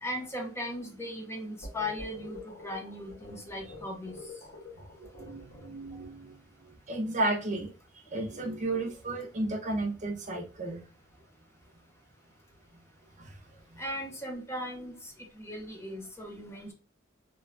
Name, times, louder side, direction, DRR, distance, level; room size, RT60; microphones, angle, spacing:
voice 1, 0.0-4.1 13.8-16.7, left 1 dB, 15° left, 0.7 m, -38 dB
sound 1, 1.6-6.0, left 2 dB, 85° left, 1.3 m, -47 dB
voice 2, 5.2-6.3 6.9-7.7 8.1-10.8 13.2-13.3, right 2 dB, 40° right, 0.5 m, -33 dB
3.0 x 2.2 x 2.4 m
head